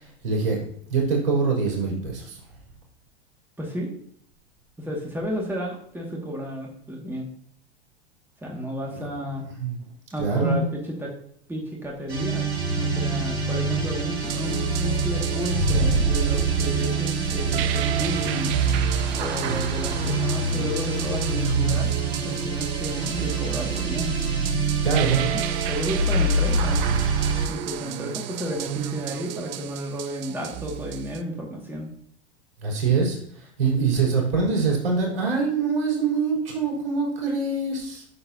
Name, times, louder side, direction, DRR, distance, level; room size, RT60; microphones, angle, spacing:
voice 1, 0.2-0.6 0.9-2.4 8.9-9.1 9.6-9.8 10.2-10.7 24.8-25.2 32.6-33.2 33.6-38.0, right 4 dB, 65° right, -2 dB, 4.2 m, -24 dB
voice 2, 3.6-3.9 4.8-7.3 8.4-9.5 10.1-11.1 11.5-18.5 19.1-21.9 22.2-24.1 25.0-25.3 25.7-26.8 27.5-31.9, equal, 5° right, -2 dB, 2.0 m, -32 dB
sound 1, 12.1-27.5, right 3 dB, 80° right, 2.7 m, -25 dB
sound 2, 14.2-31.2, right 12 dB, 45° right, 0.6 m, -32 dB
11.5 x 6.8 x 2.8 m, 0.64 s
figure-of-eight pair, 90°, 31 cm